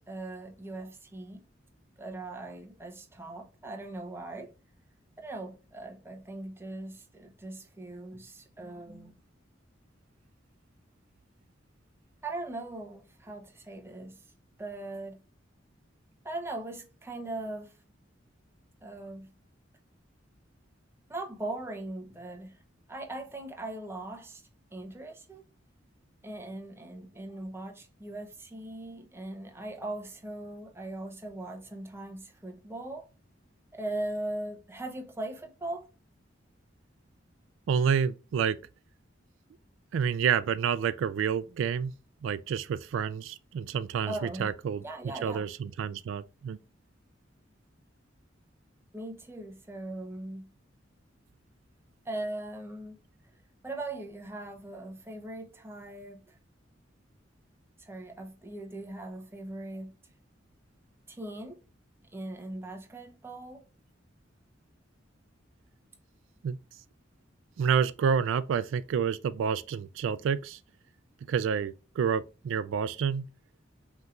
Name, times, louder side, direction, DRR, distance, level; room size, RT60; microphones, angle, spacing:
voice 1, 0.0-1.4 2.0-4.5 5.2-9.1 12.2-14.2 14.6-15.2 16.2-17.8 18.8-19.3 21.1-22.6 22.9-24.4 24.7-25.4 26.2-33.1 33.7-35.9 44.1-44.5 44.8-45.5 48.9-50.5 52.0-53.0 53.6-56.4 57.8-59.9 61.1-61.6 62.1-63.6, right 2 dB, 15° right, 0.7 m, -39 dB
voice 2, 37.7-38.6 39.9-41.9 42.2-44.8 45.2-46.6 66.4-66.6 67.6-70.6 71.3-73.3, right 7 dB, 80° right, 0.3 m, -29 dB
5.3 x 3.0 x 2.4 m
head